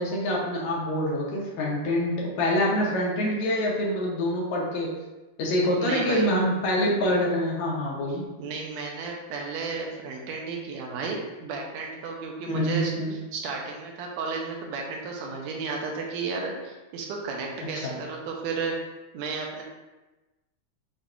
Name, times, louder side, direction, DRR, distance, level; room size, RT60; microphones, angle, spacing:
voice 1, 0.0-4.9 5.4-8.2 12.5-13.1 17.8-17.9, left 1 dB, 75° left, -3 dB, 2.0 m, -26 dB
voice 2, 5.8-6.3 8.4-18.7 19.1-19.6, right 4 dB, 75° right, 0 dB, 1.8 m, -33 dB
6.6 x 2.8 x 2.5 m, 1.1 s
omnidirectional pair, 3.5 m